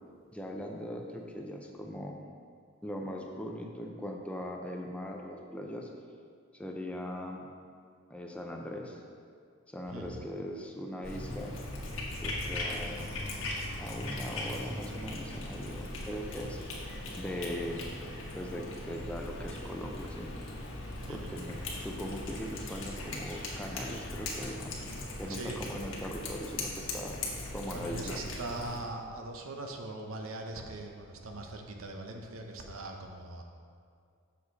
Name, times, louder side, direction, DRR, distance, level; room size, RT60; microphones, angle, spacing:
voice 1, 0.3-2.2 2.8-5.9 6.5-7.5 8.1-9.0 9.7-11.5 12.2-13.1 13.8-16.6 17.2-17.8 18.3-20.3 21.1-24.8 25.2-27.2 27.5-28.3, equal, 5° left, 1 dB, 0.6 m, -40 dB
voice 2, 9.9-10.3 21.0-21.3 25.3-25.8 27.7-33.4, right 2 dB, 85° right, 3 dB, 0.9 m, -41 dB
Cat, 11.0-28.8, left 2 dB, 70° left, 1.4 m, -39 dB
7.3 x 6.6 x 4.1 m, 2.3 s
head